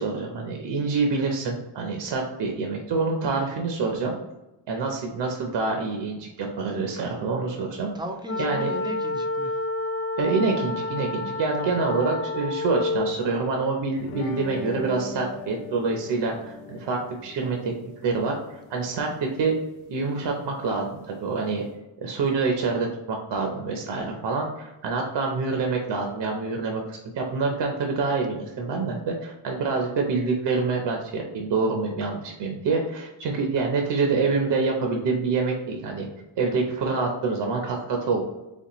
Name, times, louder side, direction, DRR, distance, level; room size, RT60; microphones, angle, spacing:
voice 1, 0.0-4.1 4.7-7.9 8.4-8.7 10.2-17.7 18.0-19.5 19.9-21.6 22.0-36.1 36.4-38.2, right 4 dB, 60° right, 1 dB, 0.7 m, -26 dB
voice 2, 7.9-9.7 11.6-11.9 24.0-24.3, right 1 dB, 10° right, 3 dB, 0.4 m, -37 dB
sound 1, 8.2-13.2, left 2 dB, 30° left, 0.6 m, -29 dB
sound 2, 14.0-21.7, left 1 dB, 80° left, 0.7 m, -40 dB
4.2 x 3.6 x 3.0 m, 1.0 s
cardioid pair, 145°, 47 cm